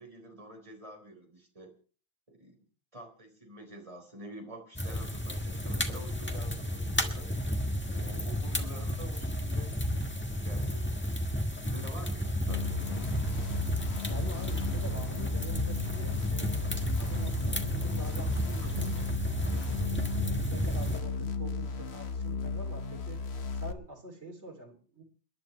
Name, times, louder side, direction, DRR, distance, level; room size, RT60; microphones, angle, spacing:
voice 1, 0.0-1.7 2.3-2.6 2.9-7.3 7.9-9.8 10.3-11.0 11.5-13.0 18.7-19.1, right 1 dB, 30° right, 2 dB, 4.2 m, -48 dB
sound 1, 4.7-21.0, equal, 10° left, 1.5 m, -32 dB
sound 2, 12.5-23.7, left 4 dB, 75° left, 1.3 m, -35 dB
voice 2, 14.1-23.3 23.5-25.0, right 1 dB, 85° right, 2 dB, 3.5 m, -46 dB
29.5 x 10.5 x 3.2 m, 0.40 s
omnidirectional pair, 1.1 m